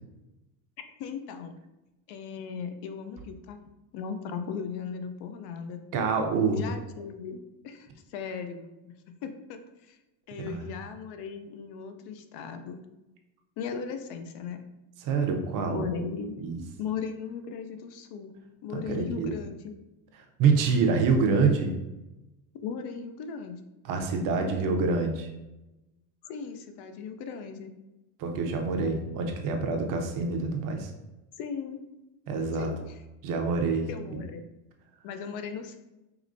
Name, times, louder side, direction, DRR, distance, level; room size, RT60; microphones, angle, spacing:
voice 1, 0.8-1.5 2.1-3.6 3.9-5.8 6.5-10.0 10.3-12.8 13.6-14.6 15.7-16.4 16.8-18.3 18.6-19.7 22.6-23.6 24.4-24.9 26.2-27.7 31.4-31.8 32.6-32.8 33.9-34.4 35.0-35.8, left 6 dB, 55° left, 8 dB, 0.5 m, -37 dB
voice 2, 5.9-6.6 10.4-10.7 15.0-15.9 16.4-16.6 18.7-19.3 20.1-21.8 23.9-25.3 28.2-30.9 32.3-32.7 33.2-33.9, right 4 dB, 45° right, 3 dB, 0.6 m, -26 dB
4.8 x 3.1 x 2.5 m, 0.99 s
cardioid pair, 160°, 49 cm